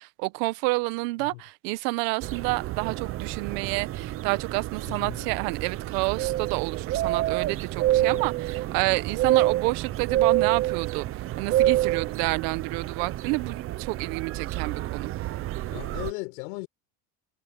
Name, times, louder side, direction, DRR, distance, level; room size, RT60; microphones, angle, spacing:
voice 1, 0.0-15.1, right 24 dB, 70° right, 1.2 m, -29 dB
sound 1, 2.2-16.1, right 14 dB, 30° right, 0.5 m, -28 dB
voice 2, 4.8-5.3 8.0-8.3 15.7-16.7, left 24 dB, 85° left, 6.5 m, -37 dB
cardioid pair, 155°, 50 cm